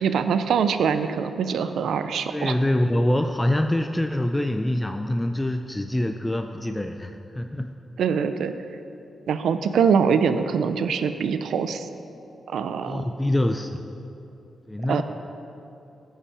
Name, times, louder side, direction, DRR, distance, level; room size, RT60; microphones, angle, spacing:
voice 1, 0.0-2.5 8.0-8.5 9.3-11.9 12.5-13.1 14.9-15.0, right 6 dB, 85° right, 10 dB, 0.4 m, -23 dB
voice 2, 2.3-7.7 12.8-13.8 14.7-15.0, left 1 dB, 10° left, 6 dB, 0.4 m, -25 dB
15.5 x 5.5 x 4.9 m, 2.8 s
cardioid pair, 90°, 0 cm